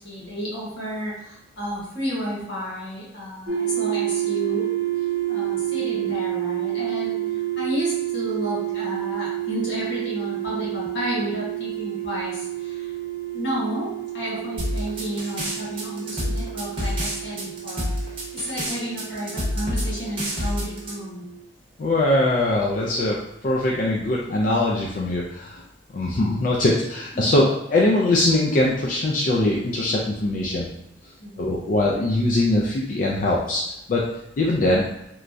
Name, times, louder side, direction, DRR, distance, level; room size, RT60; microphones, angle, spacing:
voice 1, 0.0-4.7 5.3-7.2 7.6-12.9 13.3-17.9 18.3-21.2 27.1-27.3 31.2-31.6, equal, 75° left, -6 dB, 1.2 m, -31 dB
sound 1, 3.5-21.4, right 14 dB, 60° right, 0.6 m, -29 dB
sound 2, 14.6-20.9, equal, 30° right, 0.7 m, -27 dB
voice 2, 21.8-23.2 23.4-25.6 25.9-30.7 31.4-33.6 33.9-34.0 34.4-34.8, left 1 dB, 45° left, -3 dB, 0.3 m, -21 dB
3.0 x 2.3 x 2.5 m, 0.82 s
head